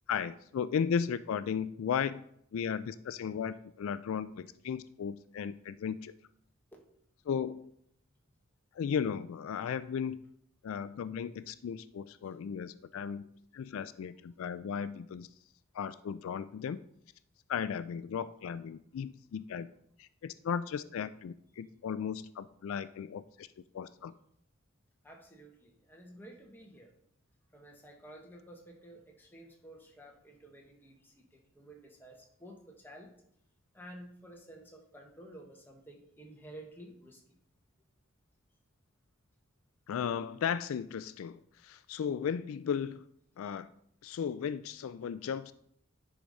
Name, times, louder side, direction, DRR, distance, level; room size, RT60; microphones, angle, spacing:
voice 1, 0.1-2.2 2.5-6.1 7.3-7.7 8.7-10.2 10.6-13.2 13.5-15.3 15.7-16.8 17.5-19.7 20.0-23.5 23.7-24.1 39.9-43.1 43.4-43.7 44.0-45.5, left 7 dB, 75° left, 14 dB, 0.3 m, -35 dB
voice 2, 25.0-26.9 27.5-33.1 33.7-37.2 43.4-43.6, right 1 dB, 10° left, 0 dB, 1.2 m, -52 dB
10.5 x 5.0 x 4.0 m, 0.70 s
head